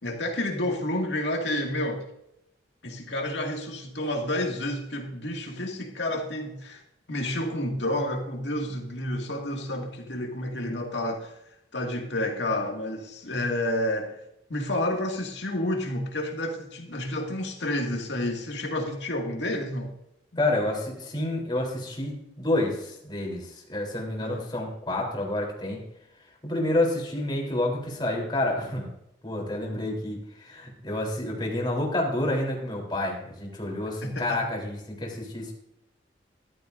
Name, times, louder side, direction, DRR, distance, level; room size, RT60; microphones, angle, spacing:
voice 1, 0.0-2.0 2.8-6.8 7.1-11.4 11.7-14.1 14.5-19.9 24.2-24.5 34.0-34.4, left 1 dB, 70° left, 2 dB, 2.1 m, -30 dB
voice 2, 20.4-25.9 26.4-28.9 29.2-35.5, left 1 dB, 25° left, -1 dB, 3.6 m, -29 dB
14.5 x 12.5 x 2.6 m, 0.80 s
head